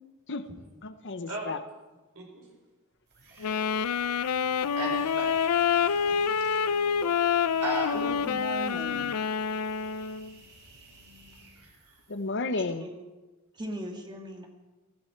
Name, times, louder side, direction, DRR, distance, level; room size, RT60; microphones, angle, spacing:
voice 1, 0.8-1.6 6.1-6.4 12.1-12.9, left 3 dB, 55° left, 11 dB, 0.9 m, -33 dB
sound 1, 2.9-12.4, right 2 dB, 50° right, 4.6 m, -53 dB
voice 2, 3.3-4.1 4.8-6.7 7.6-8.1, right 2 dB, 70° right, -1 dB, 4.8 m, -37 dB
Wind instrument woodwind instrument, 3.4-10.3, left 7 dB, 90° left, 0.5 m, -27 dB
voice 3, 7.9-9.2 12.7-13.0 13.5-14.5, right 1 dB, 20° right, 2 dB, 1.7 m, -38 dB
18.0 x 15.5 x 4.6 m, 1.2 s
head